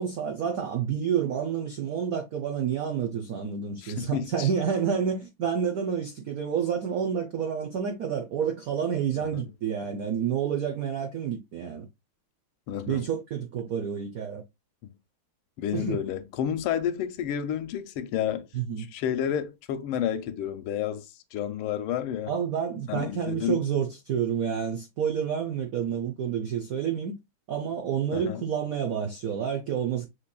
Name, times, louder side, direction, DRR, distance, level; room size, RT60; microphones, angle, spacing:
voice 1, 0.0-11.9 12.9-14.4 15.7-16.0 18.5-18.9 22.3-27.2 27.5-30.1, right 7 dB, 90° right, 0.7 m, -29 dB
voice 2, 3.8-4.5 9.3-9.4 12.7-13.1 14.8-14.9 15.6-18.5 18.8-22.3 22.9-23.6 28.1-28.4, left 9 dB, 85° left, 1.5 m, -30 dB
6.6 x 3.1 x 2.2 m
omnidirectional pair, 2.4 m